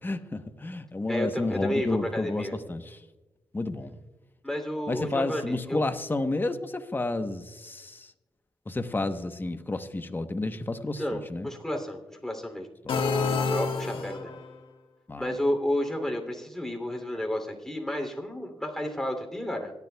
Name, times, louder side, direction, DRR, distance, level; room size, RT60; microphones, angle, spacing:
voice 1, 0.0-3.0 3.5-4.0 4.9-8.1 8.7-11.5 15.1-15.4, left 2 dB, 25° left, 8 dB, 1.0 m, -31 dB
voice 2, 1.1-2.5 4.4-5.8 11.0-12.7 13.4-14.3 15.2-19.7, left 1 dB, 5° left, 2 dB, 2.9 m, -31 dB
sound 1, 12.9-14.5, left 4 dB, 80° left, 1.6 m, -28 dB
26.0 x 11.0 x 2.3 m, 1.1 s
cardioid pair, 65°, 9 cm